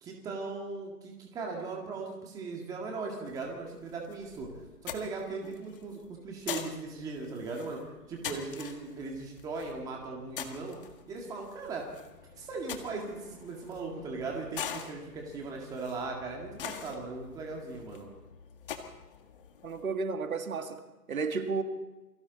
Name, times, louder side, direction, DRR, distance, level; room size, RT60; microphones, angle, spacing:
voice 1, 0.0-4.5 4.8-10.8 11.1-11.8 12.4-18.1, right 3 dB, 5° right, 2.0 m, -38 dB
sound 1, 3.2-20.0, left 8 dB, 35° left, 1.8 m, -45 dB
voice 2, 19.6-20.8 21.1-21.6, right 4 dB, 60° right, 2.1 m, -32 dB
28.5 x 23.0 x 4.1 m
hypercardioid pair, 155°, 48 cm